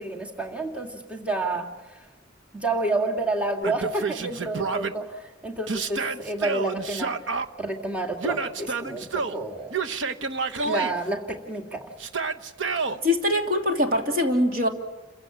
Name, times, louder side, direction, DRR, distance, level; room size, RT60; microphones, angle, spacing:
voice 1, 0.0-2.0 2.5-7.2 7.6-9.7 10.6-11.9, right 2 dB, 5° right, 0 dB, 2.1 m, -29 dB
Yell, 3.6-4.9 5.7-7.5 8.2-9.4 9.7-10.9 12.0-13.0, right 4 dB, 75° right, 1.1 m, -29 dB
voice 2, 13.0-14.7, left 1 dB, 45° right, 3 dB, 2.8 m, -23 dB
29.5 x 16.0 x 8.9 m, 1.2 s
head